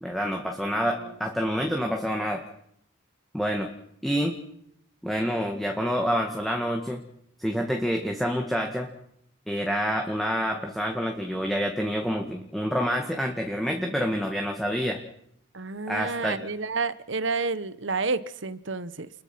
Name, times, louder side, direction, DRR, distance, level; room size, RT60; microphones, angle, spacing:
voice 1, 0.0-2.4 3.3-3.7 4.0-4.3 5.0-7.0 7.4-8.9 9.5-15.0 15.9-16.4, equal, ahead, 2 dB, 1.8 m, -27 dB
voice 2, 15.5-19.1, right 4 dB, 60° right, 15 dB, 1.2 m, -30 dB
29.5 x 21.5 x 6.1 m, 0.72 s
head